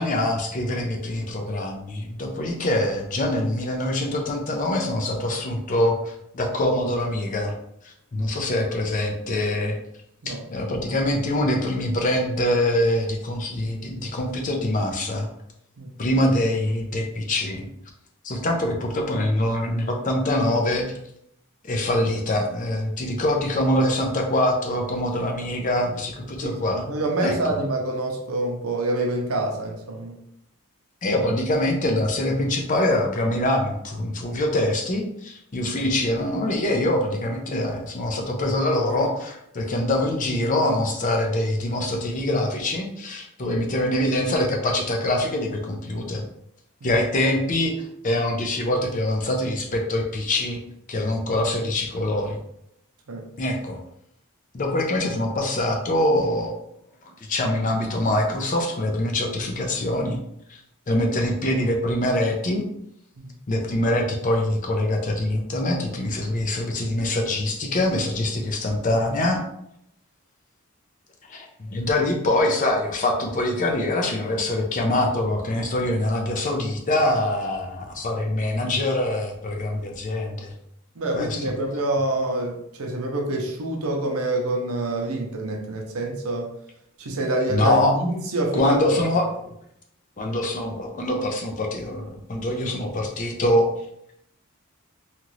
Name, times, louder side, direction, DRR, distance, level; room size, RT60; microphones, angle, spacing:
voice 1, 0.0-7.5 7.8-9.8 10.3-15.3 16.0-17.7 18.2-20.9 21.7-26.9 27.2-27.6 31.0-46.2 46.8-50.6 50.9-52.4 53.4-53.8 54.5-56.5 57.3-60.2 60.5-60.6 60.9-62.7 63.5-69.4 71.3-80.5 81.1-81.5 87.5-87.9 88.5-89.3 90.2-93.7, left 1 dB, 35° left, 2 dB, 0.5 m, -24 dB
voice 2, 15.8-16.2 26.4-30.2 46.8-46.9 53.1-53.3 63.2-63.3 81.0-86.5 87.0-89.0, right 1 dB, 75° right, 2 dB, 0.6 m, -26 dB
2.9 x 2.5 x 3.0 m, 0.75 s
head